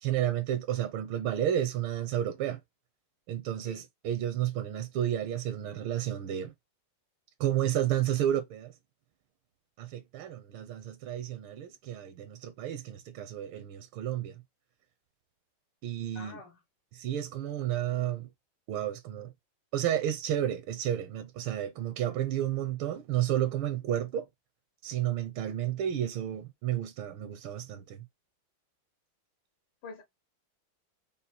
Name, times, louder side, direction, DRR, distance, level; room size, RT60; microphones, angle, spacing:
voice 1, 0.0-2.6 3.3-6.5 7.4-8.7 9.8-14.4 15.8-16.4 16.9-18.3 18.7-19.3 19.7-24.3 24.8-28.0, right 11 dB, 80° right, 1.4 m, -31 dB
voice 2, 16.1-16.6 29.8-30.0, left 4 dB, 75° left, 2.1 m, -46 dB
5.5 x 2.0 x 4.3 m
omnidirectional pair, 2.4 m